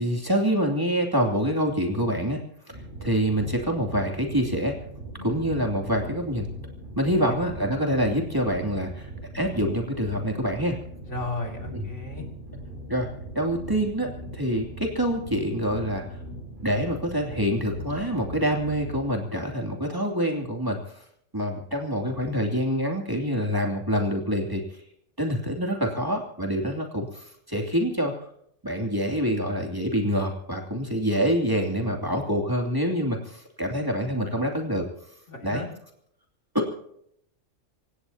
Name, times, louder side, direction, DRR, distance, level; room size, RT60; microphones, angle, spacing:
voice 1, 0.0-2.4 3.0-4.8 5.2-6.5 7.0-9.1 9.3-10.8 11.7-11.9 12.9-13.1 13.3-16.2 16.6-21.0 21.3-24.6 25.2-28.1 28.6-34.9 35.4-35.6 36.5-36.6, equal, 15° right, 1 dB, 2.8 m, -26 dB
sound 1, 2.7-19.1, right 1 dB, 40° right, 7.1 m, -40 dB
voice 2, 11.0-12.3 35.3-35.7, left 2 dB, 65° left, 2 dB, 3.1 m, -35 dB
27.5 x 16.5 x 2.9 m, 0.70 s
omnidirectional pair, 1.3 m